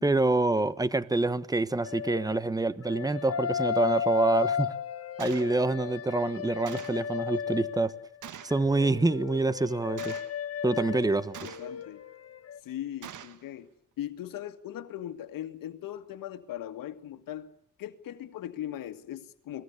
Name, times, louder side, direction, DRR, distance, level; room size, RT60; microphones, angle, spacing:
voice 1, 0.0-4.7 5.2-7.9 8.4-10.2 10.6-11.5, right 2 dB, 10° right, 1.2 m, -26 dB
sound 1, 1.8-2.4 2.9-8.0 8.5-12.1 12.3-12.6, left 8 dB, 45° left, 1.5 m, -34 dB
Gunshot gunfire, 5.2-5.5 6.7-7.1 8.2-8.6 10.0-10.4 11.3-11.8 13.0-13.4, right 9 dB, 60° right, 1.9 m, -44 dB
voice 2, 11.4-12.0 12.6-13.7 14.0-17.5 17.8-19.6, left 12 dB, 75° left, 2.0 m, -39 dB
29.5 x 20.0 x 8.4 m
cardioid pair, 95°, 34 cm